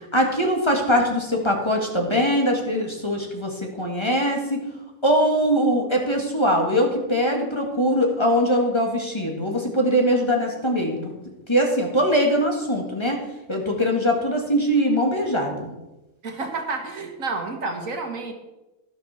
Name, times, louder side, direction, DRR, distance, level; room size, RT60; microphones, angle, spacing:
voice 1, 0.1-4.6 5.0-11.0 11.5-13.2 13.5-15.7, equal, 20° left, 0 dB, 2.0 m, -22 dB
voice 2, 16.2-18.3, right 3 dB, 75° right, 5 dB, 1.9 m, -30 dB
12.0 x 12.0 x 4.3 m, 1.0 s
omnidirectional pair, 1.4 m